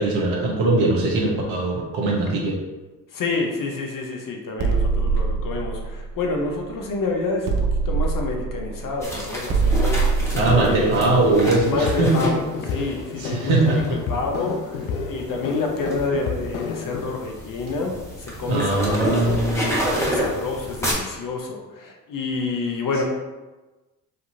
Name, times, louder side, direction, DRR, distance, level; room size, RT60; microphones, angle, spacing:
voice 1, 0.0-2.6 10.3-12.3 13.1-13.9 18.5-19.7, right 2 dB, 65° right, -2 dB, 1.3 m, -21 dB
voice 2, 3.1-10.0 10.5-11.0 11.6-12.4 12.7-13.5 13.9-17.9 18.2-19.4 20.0-23.0, left 3 dB, 40° left, 1 dB, 0.9 m, -28 dB
sound 1, 4.6-6.9 7.5-12.1, right 4 dB, 40° right, 0.8 m, -24 dB
sound 2, 9.0-13.0 13.8-14.0 14.5-20.9, equal, 5° left, 1.4 m, -29 dB
sound 3, 10.2-17.1 18.9-19.5, left 5 dB, 65° left, 0.7 m, -31 dB
5.1 x 2.8 x 2.7 m, 1.2 s
hypercardioid pair, 60°, 49 cm